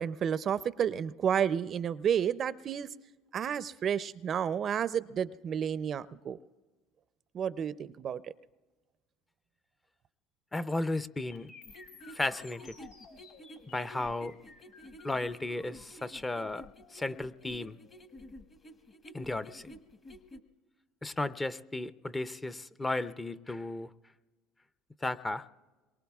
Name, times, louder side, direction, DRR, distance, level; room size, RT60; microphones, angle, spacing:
voice 1, 0.0-2.9 3.3-6.4 7.3-8.2, right 8 dB, 45° right, 16 dB, 0.4 m, -31 dB
voice 2, 10.5-11.5 12.1-12.7 13.7-14.4 15.0-16.7 16.9-17.8 19.1-19.7 21.0-23.9 25.0-25.4, left 2 dB, 15° left, 15 dB, 0.5 m, -34 dB
sound 1, 11.3-19.3, left 4 dB, 80° left, 5.0 m, -56 dB
sound 2, 11.7-20.4, equal, 30° left, 1.1 m, -50 dB
27.0 x 23.0 x 2.4 m, 1.3 s
supercardioid pair, 95°, 0 cm